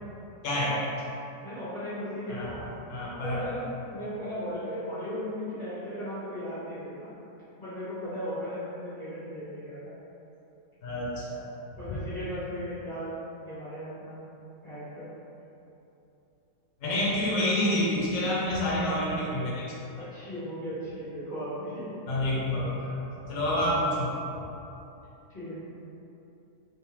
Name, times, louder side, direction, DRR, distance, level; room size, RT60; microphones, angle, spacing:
voice 1, 0.4-0.8 2.3-2.6 2.9-3.5 10.8-11.5 16.8-19.7 22.1-22.9 23.3-24.1, left 1 dB, 65° left, -5 dB, 1.2 m, -28 dB
voice 2, 1.4-2.7 3.2-7.1 7.6-9.9 11.8-13.1 13.4-14.2 14.6-15.1 19.9-21.9 25.3-25.6, equal, 35° left, -15 dB, 1.4 m, -36 dB
3.8 x 3.6 x 3.0 m, 2.9 s
omnidirectional pair, 1.5 m